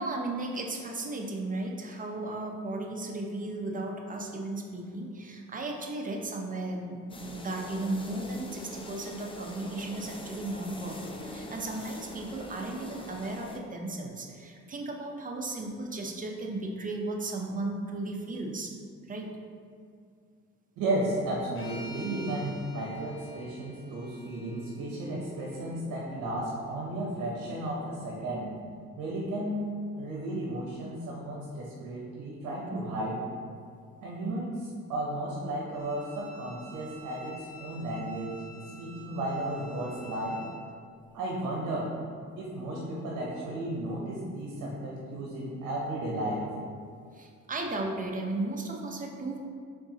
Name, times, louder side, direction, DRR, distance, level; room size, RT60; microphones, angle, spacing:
voice 1, 0.0-18.7 19.1-19.3 47.1-49.4, right 2 dB, 25° right, 1 dB, 0.6 m, -35 dB
sound 1, 7.1-13.6, left 1 dB, 20° left, 0.4 m, -43 dB
voice 2, 20.8-28.5 29.0-29.6 29.9-33.2 34.0-40.4 41.1-41.9 42.4-46.4, right 1 dB, 80° right, -3 dB, 0.8 m, -34 dB
sound 2, 21.5-25.7, left 1 dB, 45° left, 1.1 m, -48 dB
Bowed string instrument, 35.7-40.6, right 1 dB, 85° left, 1.3 m, -50 dB
4.5 x 3.9 x 2.8 m, 2.2 s
cardioid pair, 90°, 30 cm